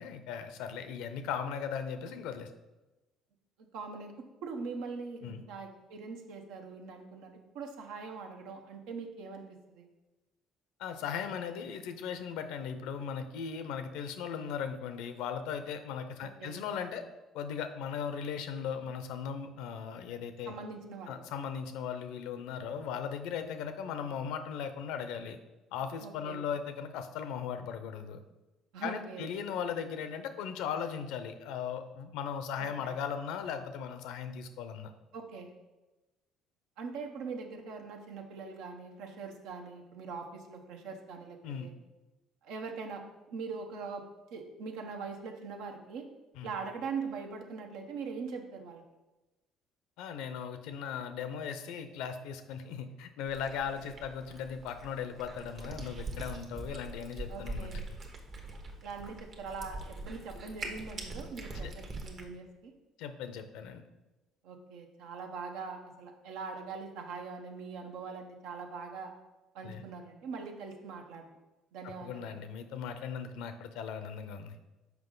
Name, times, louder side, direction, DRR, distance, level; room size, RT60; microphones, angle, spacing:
voice 1, 0.0-2.5 5.2-5.4 10.8-17.0 17.3-20.5 21.1-25.4 25.7-28.2 28.8-34.9 41.4-41.7 46.4-46.5 50.0-57.7 61.6-61.7 63.0-63.8 69.6-69.8 71.8-74.6, left 7 dB, 80° left, 9 dB, 0.6 m, -38 dB
voice 2, 3.7-9.9 16.4-16.6 20.4-21.2 26.0-26.4 28.7-29.3 32.6-32.9 35.1-35.5 36.8-41.7 42.4-43.0 43.3-44.0 44.3-46.1 46.4-48.8 57.3-57.8 58.8-62.7 64.4-69.1 69.5-71.4 71.7-72.4, right 4 dB, 80° right, 4 dB, 0.8 m, -42 dB
Cat, 53.3-62.3, right 2 dB, 50° right, 1.1 m, -43 dB
5.9 x 4.9 x 3.8 m, 1.1 s
supercardioid pair, 85°, 0 cm